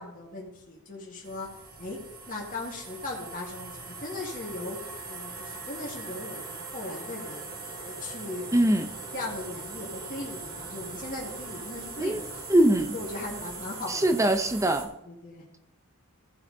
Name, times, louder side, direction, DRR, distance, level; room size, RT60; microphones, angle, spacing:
voice 1, 0.0-1.5 1.8-2.0 2.3-7.5 7.8-8.7 9.1-12.5 12.9-14.3 15.0-15.5, left 2 dB, 40° left, -3 dB, 1.9 m, -38 dB
sound 1, 1.2-14.8, right 3 dB, 45° right, 2.6 m, -41 dB
voice 2, 8.5-8.9 12.0-12.2 12.5-12.9 13.9-14.9, right 1 dB, 15° right, 8 dB, 0.6 m, -22 dB
15.5 x 5.8 x 4.0 m, 0.88 s
head